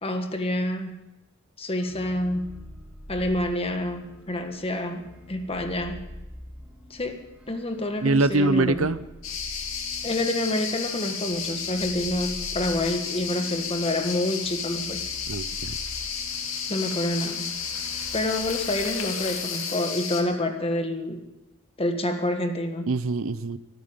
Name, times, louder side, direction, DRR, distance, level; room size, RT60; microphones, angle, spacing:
voice 1, 0.0-1.0 1.6-2.6 3.1-6.1 6.9-8.9 10.0-15.1 16.7-17.5 18.1-21.2 21.8-22.9, left 1 dB, 30° left, 6 dB, 1.5 m, -28 dB
sound 1, 1.8-19.6, equal, 5° right, 2.2 m, -46 dB
voice 2, 8.0-9.0 15.3-15.8 22.9-23.6, right 2 dB, 80° right, 15 dB, 0.7 m, -23 dB
sound 2, 9.2-20.2, left 6 dB, 80° left, 2.5 m, -32 dB
24.5 x 9.4 x 5.2 m, 0.98 s
head